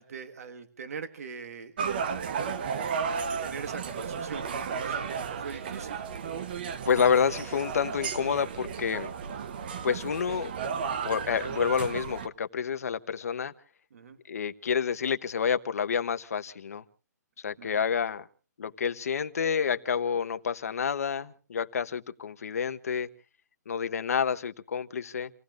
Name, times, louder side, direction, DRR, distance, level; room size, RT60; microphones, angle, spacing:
voice 1, 0.0-2.5 3.3-6.0 13.9-14.2 17.6-17.9, right 5 dB, 55° right, 1.8 m, -42 dB
sound 1, 1.8-12.3, right 6 dB, 35° right, 0.9 m, -34 dB
voice 2, 6.9-9.1 9.8-10.5 11.0-13.5 14.3-16.8 17.4-18.3 18.6-23.1 23.7-25.3, left 7 dB, 60° left, 1.1 m, -29 dB
29.5 x 17.5 x 2.5 m
hypercardioid pair, 175°, 9 cm